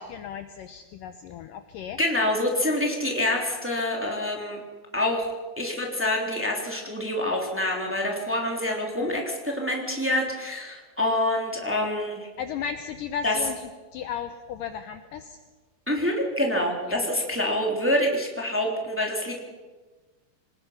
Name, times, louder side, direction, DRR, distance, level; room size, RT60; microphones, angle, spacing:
voice 1, 0.1-2.0 9.0-9.2 12.4-15.4 16.9-17.0, left 8 dB, 75° left, 8 dB, 2.2 m, -35 dB
voice 2, 2.0-4.6 4.9-5.3 5.6-12.3 13.2-13.4 15.9-19.4, left 1 dB, 5° right, 0 dB, 2.7 m, -26 dB
26.0 x 20.0 x 5.9 m, 1.3 s
omnidirectional pair, 4.6 m